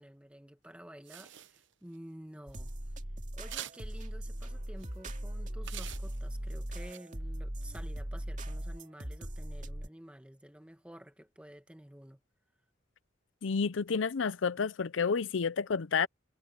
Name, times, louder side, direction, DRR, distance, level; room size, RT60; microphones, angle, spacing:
voice 1, 0.0-2.7 3.3-12.2, equal, 5° right, 1.5 m, -51 dB
sound 1, 1.1-2.0 2.5-2.7 3.5-4.0 4.8-5.0 5.6-6.5 6.9-7.0, right 11 dB, 65° right, 0.9 m, -45 dB
sound 2, 2.5-9.9, right 1 dB, 40° right, 2.4 m, -39 dB
voice 2, 13.4-16.1, left 5 dB, 75° left, 0.6 m, -30 dB
head